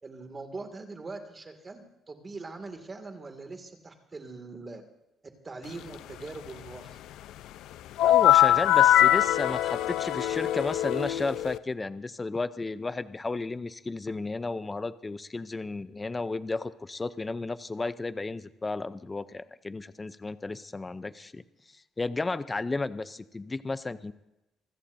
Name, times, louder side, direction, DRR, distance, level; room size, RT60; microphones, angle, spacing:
voice 1, 0.0-4.8 5.4-7.0, right 3 dB, 25° right, 5 dB, 2.1 m, -42 dB
sound 1, 8.0-11.6, left 13 dB, 80° left, 0.5 m, -22 dB
voice 2, 8.0-21.4 21.7-24.1, left 3 dB, 15° left, 14 dB, 0.5 m, -33 dB
26.0 x 16.0 x 2.6 m, 0.94 s
cardioid pair, 140°, 0 cm